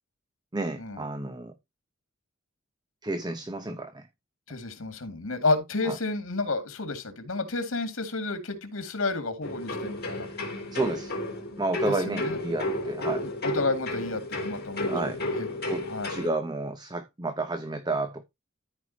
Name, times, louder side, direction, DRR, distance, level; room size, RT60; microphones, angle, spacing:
voice 1, 0.5-1.5 3.0-4.1 5.9-6.0 10.7-11.1 11.6-13.2 14.9-18.2, right 2 dB, 20° right, 0.8 m, -31 dB
voice 2, 4.5-10.3 12.1-12.4 13.4-15.5 15.8-16.1, left 3 dB, 80° left, 2.2 m, -31 dB
sound 1, 9.4-16.3, left 1 dB, 50° left, 3.9 m, -32 dB
13.5 x 4.8 x 2.8 m
head